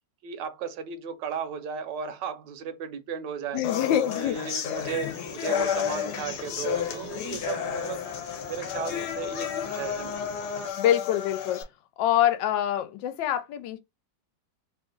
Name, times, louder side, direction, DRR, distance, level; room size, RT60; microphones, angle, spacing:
voice 1, 0.2-3.6 4.1-8.0 8.5-10.2, right 6 dB, 80° right, 1.3 m, -35 dB
voice 2, 3.5-4.4 10.8-11.6 12.0-13.8, left 11 dB, 85° left, 1.3 m, -25 dB
sound 1, 3.6-11.6, left 8 dB, 70° left, 1.2 m, -31 dB
sound 2, 4.7-10.7, left 3 dB, 40° left, 0.4 m, -45 dB
3.1 x 2.4 x 3.7 m
omnidirectional pair, 2.0 m